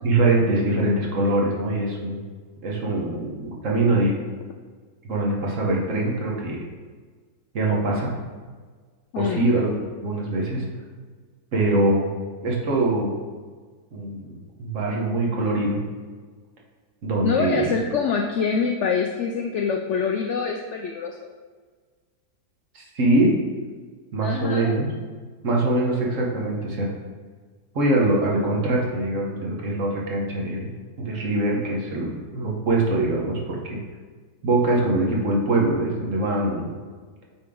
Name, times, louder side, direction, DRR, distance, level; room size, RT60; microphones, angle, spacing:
voice 1, 0.0-2.2 2.6-4.2 5.0-6.6 7.5-8.1 9.2-9.7 10.0-10.7 11.5-12.1 12.4-13.1 13.9-15.8 17.0-17.7 22.7-23.3 24.1-24.9 25.4-26.9 27.7-30.7 31.0-33.8 34.4-36.8, right 2 dB, 55° right, -2 dB, 1.4 m, -23 dB
voice 2, 9.1-9.5 17.2-21.2 24.2-24.7, left 6 dB, 75° left, 2 dB, 0.6 m, -25 dB
8.7 x 3.6 x 3.7 m, 1.5 s
omnidirectional pair, 1.7 m